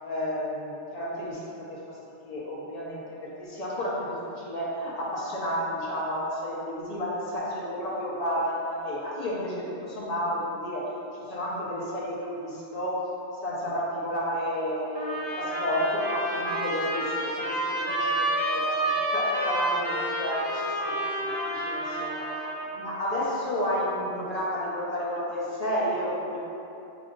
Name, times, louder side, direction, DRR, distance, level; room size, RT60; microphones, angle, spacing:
voice 1, 0.0-2.0 2.2-13.1 13.4-20.9 21.5-22.3 22.7-26.4, equal, 40° left, -6 dB, 0.9 m, -31 dB
sound 1, 14.9-22.7, right 1 dB, 40° right, 1.0 m, -29 dB
7.0 x 2.7 x 2.5 m, 2.9 s
omnidirectional pair, 1.1 m